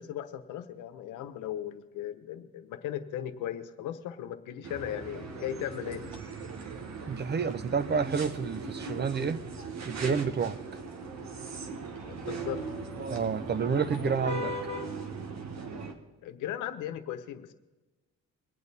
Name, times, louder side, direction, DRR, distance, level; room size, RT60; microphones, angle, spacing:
voice 1, 0.0-6.0 12.1-12.6 16.2-17.5, left 11 dB, 90° left, 1.0 m, -37 dB
sound 1, 4.6-15.9, right 3 dB, 65° right, 1.6 m, -38 dB
sound 2, 5.1-7.8 8.2-8.3 12.2-14.9, left 4 dB, ahead, 1.3 m, -52 dB
voice 2, 7.1-9.4 9.9-10.6 13.1-14.5, right 6 dB, 35° right, 0.7 m, -29 dB
23.0 x 8.8 x 4.2 m
cardioid pair, 90°, 30 cm